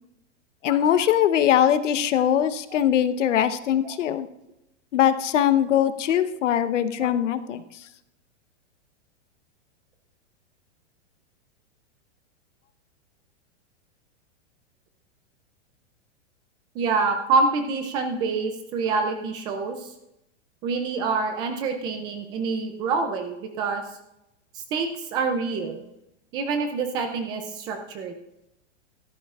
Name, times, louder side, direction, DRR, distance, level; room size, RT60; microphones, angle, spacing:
voice 1, 0.6-4.3 4.9-7.6, left 10 dB, 90° left, 11 dB, 1.0 m, -21 dB
voice 2, 16.8-19.9 20.6-23.8 24.7-25.8 26.3-28.1, right 4 dB, 15° right, 6 dB, 0.4 m, -26 dB
16.5 x 13.5 x 2.4 m, 0.87 s
supercardioid pair, 165°, 36 cm